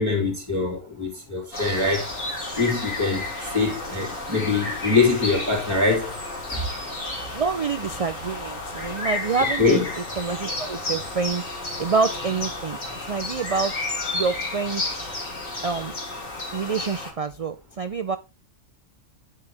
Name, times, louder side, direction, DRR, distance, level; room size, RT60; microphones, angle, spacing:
voice 1, 0.0-2.1 2.5-6.2 6.5-6.7 9.6-9.9, left 4 dB, 20° right, 2.9 m, -23 dB
sound 1, 1.5-17.1, left 2 dB, 85° left, 3.3 m, -32 dB
voice 2, 7.3-9.8 10.2-13.8 14.1-14.8 15.6-15.9 16.5-18.2, right 5 dB, 65° right, 0.3 m, -27 dB
9.7 x 6.8 x 3.4 m
omnidirectional pair, 1.4 m